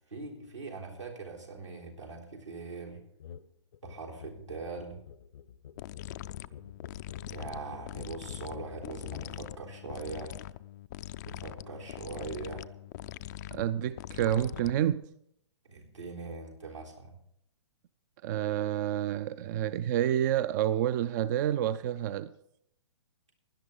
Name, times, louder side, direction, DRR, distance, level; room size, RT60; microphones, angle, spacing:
voice 1, 0.1-3.0 3.8-5.0 7.3-10.4 11.2-12.6 15.6-17.1, right 4 dB, 85° right, -3 dB, 3.8 m, -41 dB
sound 1, 3.2-3.5 3.7-9.3, left 9 dB, 60° left, 0.7 m, -47 dB
sound 2, 5.8-15.1, left 14 dB, 40° left, 0.4 m, -43 dB
voice 2, 13.5-15.0 18.2-22.3, right 11 dB, 40° right, 15 dB, 0.4 m, -29 dB
17.0 x 11.0 x 3.8 m, 0.72 s
figure-of-eight pair, 115°, 15 cm